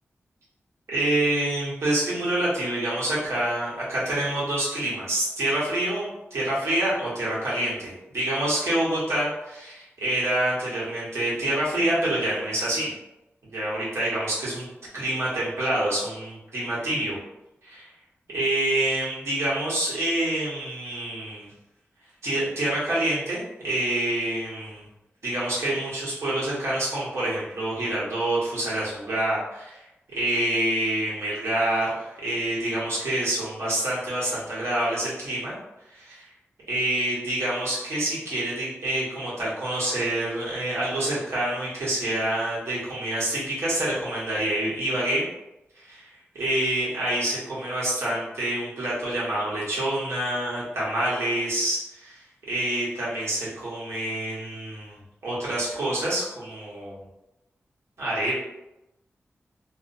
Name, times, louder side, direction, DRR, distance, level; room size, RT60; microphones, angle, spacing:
voice 1, 0.9-12.9 13.5-14.7 14.9-17.2 17.6-17.9 18.3-21.5 22.2-24.8 25.2-35.5 35.9-36.2 36.7-45.2 45.7-46.1 46.3-52.2 52.5-55.0 55.2-57.0 58.0-58.3, right 1 dB, 75° right, -8 dB, 1.1 m, -27 dB
2.5 x 2.1 x 2.6 m, 0.95 s
wide cardioid pair, 150°, 5 cm